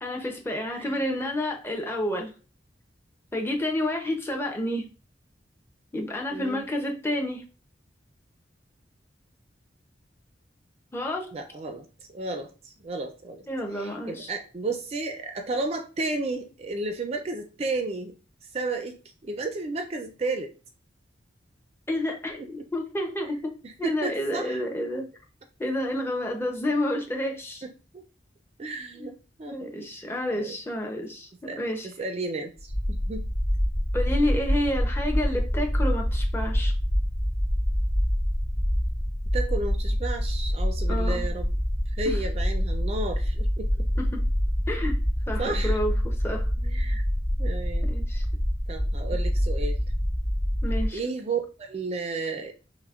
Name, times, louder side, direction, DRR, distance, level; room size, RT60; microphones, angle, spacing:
voice 1, 0.0-2.3 3.3-4.9 5.9-7.4 10.9-11.3 13.5-14.3 21.9-23.5 23.8-25.1 25.6-27.6 29.0-29.1 29.5-31.3 31.6-31.9 33.9-36.7 40.9-41.3 44.0-44.2 44.7-45.0 45.3-46.5 47.9-48.2 50.6-51.0, left 1 dB, 15° left, 2 dB, 0.6 m, -29 dB
voice 2, 0.7-1.0 6.3-6.6 11.3-11.9 12.1-13.5 13.7-18.1 18.5-20.5 22.4-22.7 23.6-24.6 27.6-28.0 28.6-30.1 30.3-30.6 31.4-31.6 31.8-33.3 39.3-41.5 42.0-43.9 45.4-45.8 46.6-47.0 47.4-47.9 48.7-49.8 50.9-52.5, right 3 dB, 35° right, 5 dB, 0.4 m, -33 dB
sound 1, 32.6-50.9, equal, 30° left, 1.3 m, -26 dB
6.0 x 2.0 x 2.4 m, 0.35 s
head